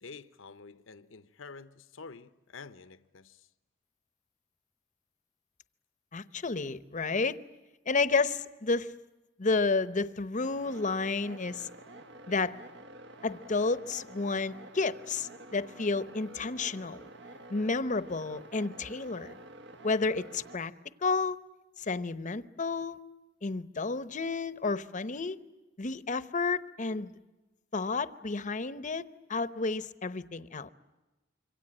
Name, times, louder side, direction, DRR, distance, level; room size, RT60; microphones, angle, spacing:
voice 1, 0.0-3.5, left 4 dB, 70° left, 0.9 m, -48 dB
voice 2, 6.1-7.4 7.9-8.9 9.4-11.7 12.3-12.5 13.2-17.0 17.5-19.3 19.8-20.7 21.0-21.4 21.8-23.0 23.4-25.4 25.8-27.1 27.7-30.7, left 3 dB, 40° left, 0.9 m, -31 dB
sound 1, 10.4-20.6, right 2 dB, 60° right, 1.4 m, -49 dB
26.5 x 24.0 x 8.8 m
head